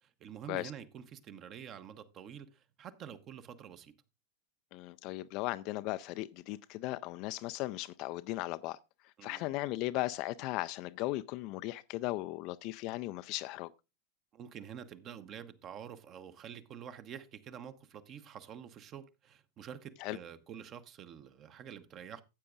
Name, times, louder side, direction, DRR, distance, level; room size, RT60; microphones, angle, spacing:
voice 1, 0.0-3.9 9.2-9.5 14.3-22.2, right 8 dB, 30° right, 0.9 m, -48 dB
voice 2, 4.7-8.8 9.2-13.7 20.0-20.2, left 18 dB, 40° left, 0.4 m, -37 dB
14.5 x 8.5 x 2.4 m
figure-of-eight pair, 90°, 0 cm